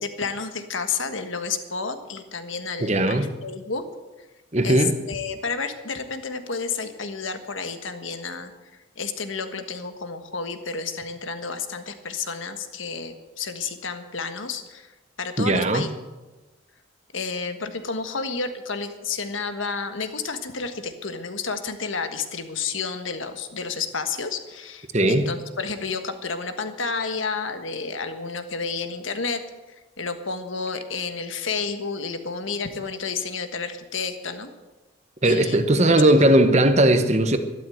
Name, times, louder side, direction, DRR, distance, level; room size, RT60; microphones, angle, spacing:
voice 1, 0.0-3.8 4.6-8.5 9.0-14.9 15.2-15.9 17.1-29.4 29.7-34.5 35.2-36.1, left 4 dB, 80° left, 8 dB, 1.5 m, -31 dB
voice 2, 2.8-3.3 4.5-5.0 15.4-15.9 24.9-25.3 35.2-37.4, right 1 dB, 35° right, 8 dB, 1.1 m, -18 dB
12.5 x 12.5 x 7.9 m, 1.1 s
head